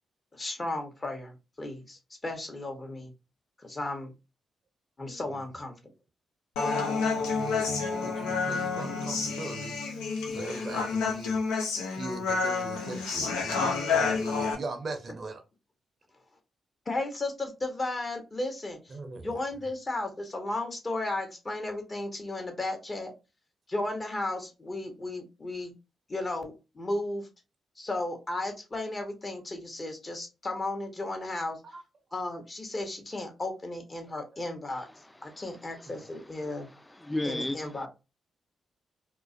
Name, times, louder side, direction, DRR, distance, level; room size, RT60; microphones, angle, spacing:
voice 1, 0.3-3.1 3.6-4.1 5.0-5.7 13.2-13.4 16.9-18.8 19.2-23.1 23.7-25.7 26.1-27.3 27.8-31.6 32.1-34.9 35.2-36.7 37.2-37.9, left 2 dB, 40° left, 1.0 m, -34 dB
Human voice, 6.6-14.5, left 4 dB, 90° left, 0.4 m, -29 dB
voice 2, 7.1-9.8 10.3-11.4 11.9-15.4 18.9-19.4 31.6-31.8 34.3-34.4 36.0-36.1, right 3 dB, 55° right, 0.5 m, -40 dB
voice 3, 34.8-37.9, left 1 dB, 15° left, 0.4 m, -37 dB
2.4 x 2.0 x 2.5 m
supercardioid pair, 45°, 0 cm